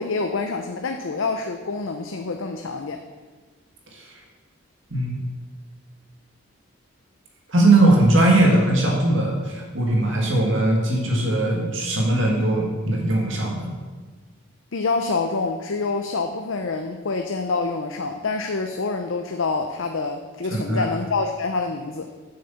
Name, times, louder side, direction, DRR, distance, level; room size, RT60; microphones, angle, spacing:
voice 1, 0.0-3.0 14.7-22.1, left 3 dB, 70° left, 5 dB, 0.6 m, -26 dB
voice 2, 7.5-13.7 20.5-20.9, right 2 dB, 65° right, -1 dB, 2.0 m, -20 dB
7.8 x 6.7 x 7.1 m, 1.4 s
head